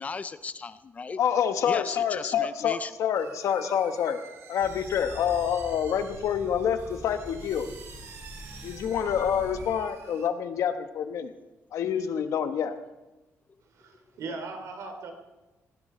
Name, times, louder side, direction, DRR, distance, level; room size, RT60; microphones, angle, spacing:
voice 1, 0.0-1.2 1.7-2.9, left 4 dB, 25° left, 14 dB, 0.5 m, -36 dB
voice 2, 1.2-4.2 4.5-7.7 8.6-11.3 11.7-12.8, left 8 dB, 75° left, 8 dB, 1.3 m, -27 dB
sound 1, 3.2-10.3, right 6 dB, 55° right, 1.8 m, -49 dB
sound 2, 4.6-9.7, right 1 dB, 25° right, 6.3 m, -44 dB
voice 3, 13.7-15.1, right 3 dB, 70° right, 5 dB, 3.1 m, -38 dB
19.0 x 16.0 x 4.4 m, 1.1 s
cardioid pair, 160°, 5 cm